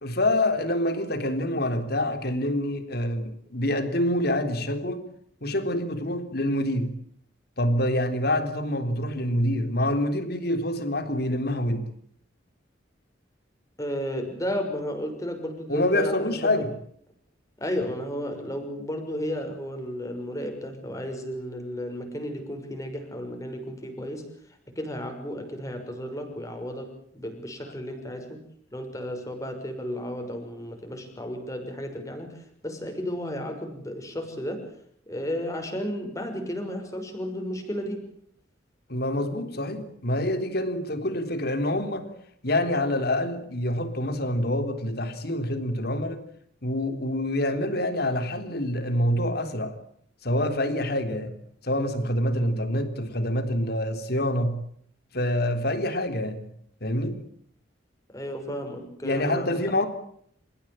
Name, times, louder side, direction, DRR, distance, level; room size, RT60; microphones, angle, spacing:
voice 1, 0.0-5.1 5.4-7.0 7.6-11.9 15.7-16.7 38.9-42.1 42.4-46.2 46.6-49.8 50.2-51.3 51.6-54.6 55.1-56.5 56.8-57.2 59.0-59.9, left 1 dB, 55° left, 3.7 m, -26 dB
voice 2, 13.8-16.6 17.6-24.3 24.7-28.4 28.7-34.7 35.1-38.1 58.1-59.6, equal, 15° left, 6.2 m, -33 dB
29.5 x 16.0 x 8.9 m
head